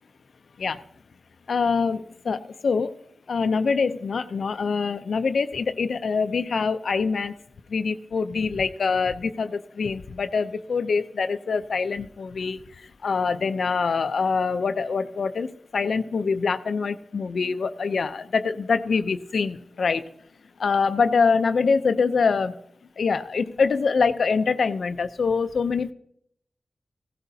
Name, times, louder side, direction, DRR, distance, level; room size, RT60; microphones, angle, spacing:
voice 1, 1.5-2.9 3.3-7.3 7.7-20.1 20.6-22.5 23.0-25.9, left 5 dB, 75° left, 11 dB, 0.5 m, -24 dB
16.5 x 16.5 x 2.8 m, 0.70 s
wide cardioid pair, 95°, 0 cm